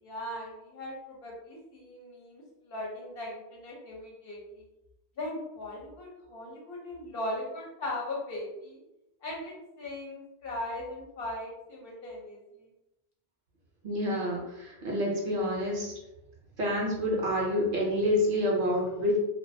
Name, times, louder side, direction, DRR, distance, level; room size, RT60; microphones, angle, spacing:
voice 1, 0.0-4.6 5.2-8.8 9.2-12.7, left 1 dB, 65° left, -2 dB, 0.8 m, -39 dB
voice 2, 13.8-15.9 16.6-19.2, equal, 60° right, -2 dB, 0.7 m, -28 dB
2.2 x 2.1 x 2.5 m, 0.92 s
omnidirectional pair, 1.1 m